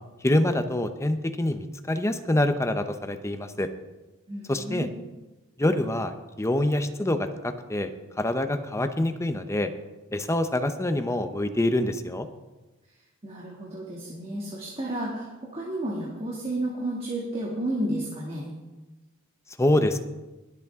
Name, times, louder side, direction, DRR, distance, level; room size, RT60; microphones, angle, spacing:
voice 1, 0.2-3.7 4.5-4.9 5.6-7.9 8.2-9.7 10.1-12.3 19.6-20.0, left 1 dB, 15° left, 8 dB, 0.7 m, -25 dB
voice 2, 4.3-4.9 13.2-18.5, right 1 dB, 30° right, -5 dB, 2.3 m, -32 dB
21.5 x 8.2 x 3.7 m, 1.1 s
head